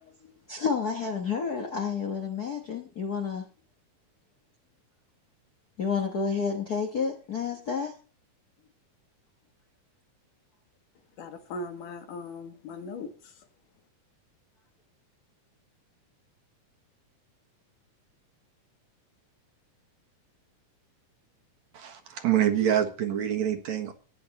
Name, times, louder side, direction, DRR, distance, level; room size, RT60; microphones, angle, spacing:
voice 1, 0.0-3.5 5.8-8.0, left 6 dB, 50° left, 1.1 m, -30 dB
voice 2, 11.2-13.3, left 3 dB, 75° left, 3.3 m, -39 dB
voice 3, 21.7-23.9, right 10 dB, 60° right, 2.6 m, -26 dB
15.5 x 9.9 x 4.3 m
omnidirectional pair, 3.8 m